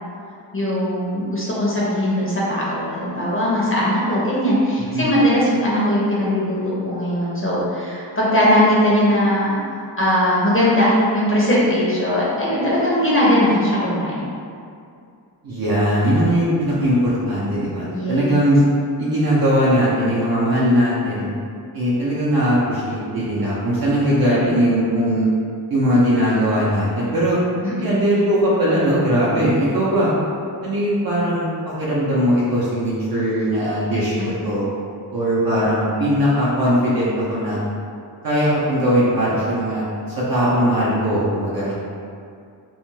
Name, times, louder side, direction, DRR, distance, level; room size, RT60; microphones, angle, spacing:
voice 1, 0.5-9.5 10.0-14.3 17.9-18.3 27.6-27.9 41.6-41.7, equal, 30° left, -7 dB, 0.5 m, -19 dB
voice 2, 4.8-5.1 15.4-18.6 19.0-21.3 21.7-25.3 25.7-27.4 27.8-30.1 30.6-31.5 31.8-34.6 35.1-37.6 38.2-39.8 40.2-41.7, equal, 55° right, -8 dB, 0.6 m, -19 dB
2.3 x 2.1 x 3.0 m, 2.4 s
wide cardioid pair, 90°, 43 cm